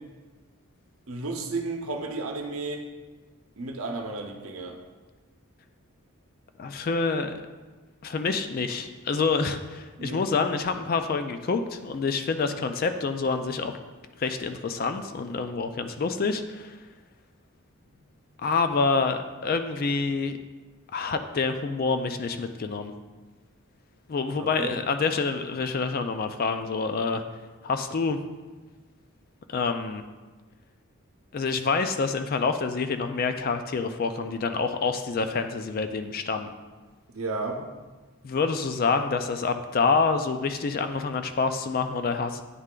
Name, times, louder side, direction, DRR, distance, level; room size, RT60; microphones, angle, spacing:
voice 1, 1.1-2.9 3.6-4.8 10.0-10.3 24.4-24.8 37.1-37.6, right 3 dB, 70° right, 3 dB, 0.8 m, -33 dB
voice 2, 6.6-7.3 8.0-13.8 14.2-16.8 18.4-20.4 20.9-22.9 24.1-27.2 27.6-28.2 29.5-30.0 31.3-36.5 38.2-42.4, left 4 dB, 40° left, 8 dB, 0.3 m, -27 dB
9.5 x 3.2 x 3.7 m, 1.3 s
head